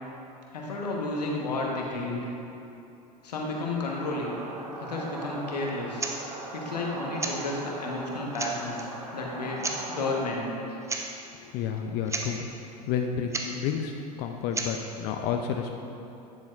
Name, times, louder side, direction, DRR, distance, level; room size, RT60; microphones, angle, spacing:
voice 1, 0.5-2.2 3.2-4.4 4.8-6.0 6.5-10.5, left 2 dB, 90° left, -1 dB, 1.1 m, -32 dB
sound 1, 3.9-10.3, right 2 dB, 85° right, 0.9 m, -39 dB
sound 2, 6.0-6.2 7.2-7.4 8.0-8.1 8.3-8.9 9.6-9.8 10.8-11.1 11.3-11.4 11.8-11.9 12.1-12.3 13.3-13.5 14.5-14.7, right 3 dB, 15° right, 0.7 m, -32 dB
voice 2, 11.4-12.5 12.9-15.8, left 7 dB, 50° left, 4 dB, 0.5 m, -30 dB
9.7 x 7.2 x 2.4 m, 2.8 s
hypercardioid pair, 85°, 20 cm